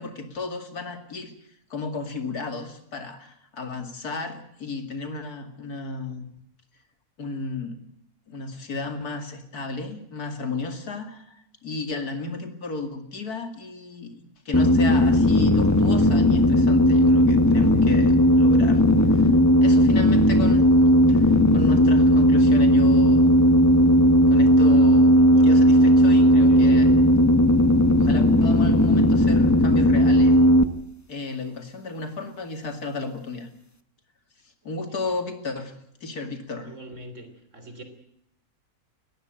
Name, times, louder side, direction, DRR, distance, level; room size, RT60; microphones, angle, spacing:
voice 1, 0.0-1.4 1.7-6.3 7.2-7.8 8.3-14.1 14.4-18.8 19.1-19.3 19.6-20.7 21.1-23.4 24.3-25.2 25.4-26.9 28.0-30.4 31.1-33.5 34.6-35.7 36.0-36.7, left 3 dB, 85° left, 7 dB, 2.9 m, -33 dB
sound 1, 14.5-30.7, equal, 15° left, 0.9 m, -16 dB
voice 2, 24.4-25.6 26.0-27.0 34.9-35.0 36.6-37.8, right 2 dB, 55° right, 8 dB, 3.7 m, -40 dB
20.0 x 15.0 x 9.1 m, 0.75 s
omnidirectional pair, 1.6 m